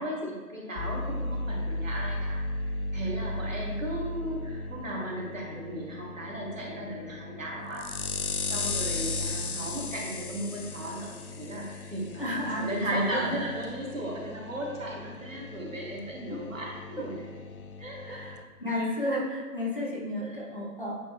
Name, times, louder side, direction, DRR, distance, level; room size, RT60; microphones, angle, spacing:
voice 1, 0.0-17.4 17.8-18.2 18.7-19.0 20.2-20.5, right 1 dB, 50° right, -2 dB, 1.9 m, -36 dB
sound 1, 0.8-18.4, left 2 dB, 65° left, 0.7 m, -36 dB
voice 2, 12.2-13.3 16.3-16.4 18.0-21.0, left 1 dB, 35° left, -3 dB, 1.0 m, -32 dB
8.4 x 4.1 x 3.2 m, 1.3 s
figure-of-eight pair, 160°, 48 cm